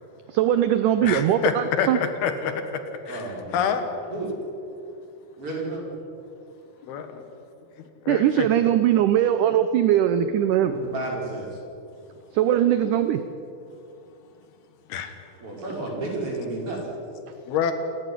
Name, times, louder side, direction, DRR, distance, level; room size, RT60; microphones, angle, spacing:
voice 1, 0.3-2.0 8.1-10.8 12.3-13.2, right 11 dB, 75° right, 10 dB, 2.0 m, -20 dB
voice 2, 1.0-1.5 1.8-2.5 3.1-3.2 3.5-3.8 6.8-7.2 8.1-8.5 14.9-15.1 17.5-17.7, left 8 dB, 80° left, 8 dB, 3.5 m, -26 dB
voice 3, 3.1-3.7 4.1-4.3 5.4-5.9 10.7-11.6 15.4-16.9, right 2 dB, 35° right, -3 dB, 6.4 m, -32 dB
28.0 x 11.0 x 9.9 m, 2.6 s
omnidirectional pair, 4.4 m